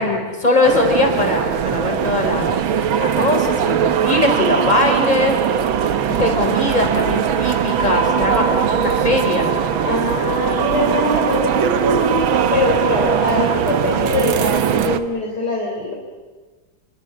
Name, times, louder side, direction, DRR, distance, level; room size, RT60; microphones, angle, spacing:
voice 1, 0.0-5.4 6.1-9.5, left 2 dB, 20° left, 3 dB, 4.1 m, -20 dB
sound 1, 0.6-15.0, right 8 dB, 90° right, 1.9 m, -20 dB
voice 2, 9.8-15.9, left 3 dB, 55° left, -2 dB, 4.3 m, -22 dB
28.5 x 23.0 x 7.1 m, 1.3 s
omnidirectional pair, 2.1 m